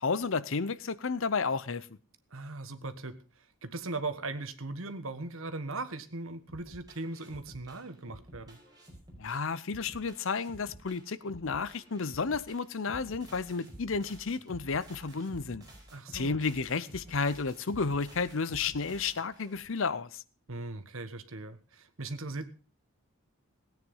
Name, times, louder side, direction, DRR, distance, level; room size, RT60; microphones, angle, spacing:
voice 1, 0.0-1.9 9.2-15.6 16.1-20.2, left 4 dB, 60° left, 0.7 m, -32 dB
voice 2, 2.3-3.2 3.6-8.6 15.9-16.3 20.5-22.5, right 2 dB, 65° right, 1.5 m, -39 dB
sound 1, 6.5-19.7, right 1 dB, 20° right, 5.2 m, -51 dB
17.5 x 9.4 x 5.5 m
head